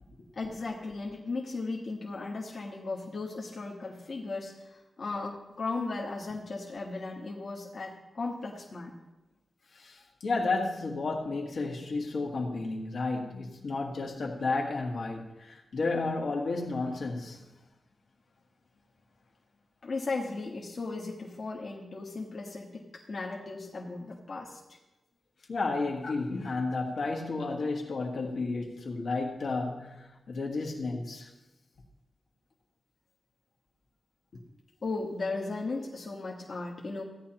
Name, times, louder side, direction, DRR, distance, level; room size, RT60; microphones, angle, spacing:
voice 1, 0.3-8.9 19.8-24.8 26.0-26.1 34.8-37.0, left 3 dB, 45° left, 1.3 m, -36 dB
voice 2, 9.7-17.4 25.5-31.3, left 3 dB, 65° left, 1.6 m, -32 dB
16.0 x 10.0 x 2.9 m
wide cardioid pair, 175°, 0 cm